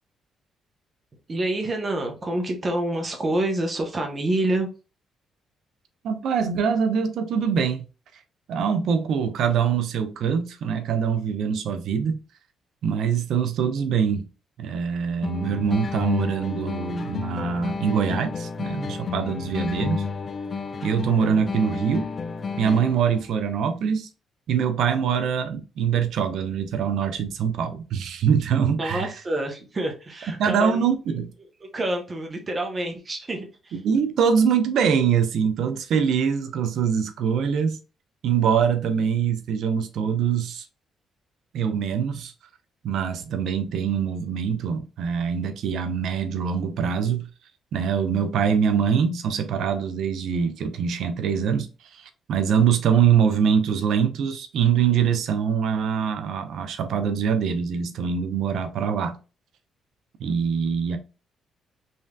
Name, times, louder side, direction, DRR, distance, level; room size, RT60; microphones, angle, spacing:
voice 1, 1.3-4.7 28.8-30.8 31.1-31.2 31.6-33.8, right 1 dB, 35° right, 0.9 m, -27 dB
voice 2, 6.0-7.8 8.5-12.2 12.8-14.3 14.6-20.0 20.8-22.1 22.6-24.1 24.5-29.1 30.3-31.3 33.8-37.8 38.2-40.7 41.5-42.3 42.8-47.3 47.7-59.2 60.2-61.0, right 7 dB, 75° right, 0.5 m, -23 dB
sound 1, 15.2-23.2, left 5 dB, 40° left, 0.4 m, -31 dB
3.3 x 2.7 x 2.3 m
cardioid pair, 90°, 0 cm